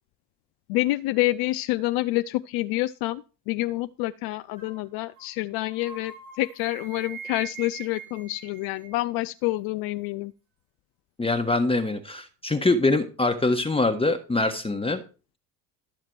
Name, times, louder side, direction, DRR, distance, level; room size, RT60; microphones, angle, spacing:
voice 1, 0.7-10.3, left 18 dB, 50° left, 0.6 m, -28 dB
sound 1, 4.6-4.8 5.2-5.3 5.6-9.0, right 6 dB, 80° right, 5.8 m, -43 dB
voice 2, 11.2-15.0, left 2 dB, 10° left, 1.3 m, -24 dB
13.0 x 7.3 x 4.7 m
figure-of-eight pair, 65°, 49 cm